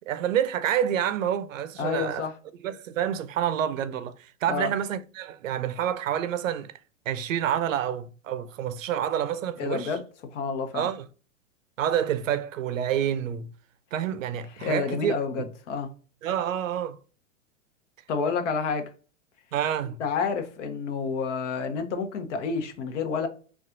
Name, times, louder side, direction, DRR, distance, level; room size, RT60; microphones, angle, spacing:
voice 1, 0.1-2.3 2.6-6.7 7.1-9.9 10.7-11.1 11.8-13.5 13.9-15.5 16.2-17.0 19.5-20.0, right 10 dB, 85° right, 0.5 m, -28 dB
voice 2, 1.8-2.3 4.5-4.7 9.6-10.0 10.3-10.9 14.6-15.9 18.1-18.8 20.0-23.3, left 5 dB, 65° left, 0.9 m, -29 dB
4.2 x 2.4 x 2.5 m
hypercardioid pair, 115°, 38 cm